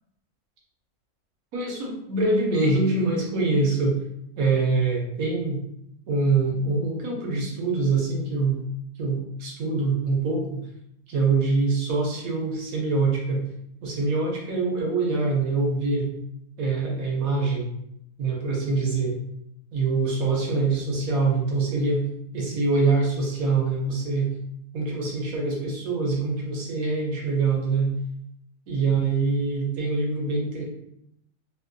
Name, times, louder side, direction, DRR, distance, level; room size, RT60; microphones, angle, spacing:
voice 1, 1.5-4.0 4.4-5.6 6.1-8.6 9.0-10.6 11.1-13.4 13.8-16.1 16.6-17.7 18.2-19.1 19.7-22.1 22.3-24.3 24.7-27.9 28.7-30.6, right 3 dB, 70° right, -2 dB, 1.2 m, -24 dB
3.0 x 2.5 x 2.5 m, 0.78 s
omnidirectional pair, 1.6 m